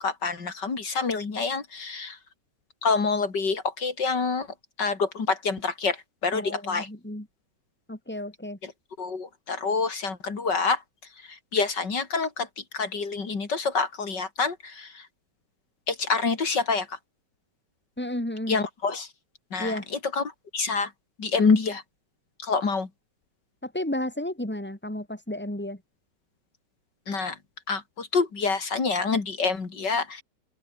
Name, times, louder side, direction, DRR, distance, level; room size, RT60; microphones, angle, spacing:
voice 1, 0.0-2.2 2.8-4.5 4.8-6.9 8.6-8.7 9.0-10.8 11.3-15.1 15.9-17.0 18.5-19.1 19.5-20.9 21.2-21.8 22.4-22.9 27.1-27.4 27.7-30.2, left 4 dB, 80° left, 3.7 m, -27 dB
voice 2, 6.3-7.3 7.9-8.6 18.0-18.6 19.6-19.9 23.6-25.8, left 1 dB, 5° left, 4.4 m, -32 dB
open air
omnidirectional pair, 1.9 m